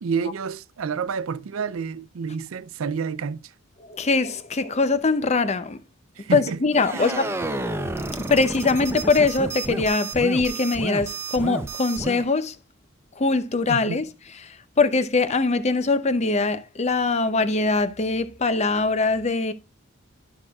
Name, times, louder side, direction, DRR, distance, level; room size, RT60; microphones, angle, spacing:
voice 1, 0.0-3.5 6.2-6.6 6.9-7.3 13.7-14.0, right 6 dB, 70° right, 0.4 m, -29 dB
voice 2, 3.9-5.8 6.3-7.2 8.2-12.5 13.2-14.1 14.8-19.5, left 3 dB, 30° left, 0.6 m, -22 dB
sound 1, 6.7-12.2, right 2 dB, 10° right, 0.6 m, -31 dB
12.0 x 6.1 x 2.3 m
head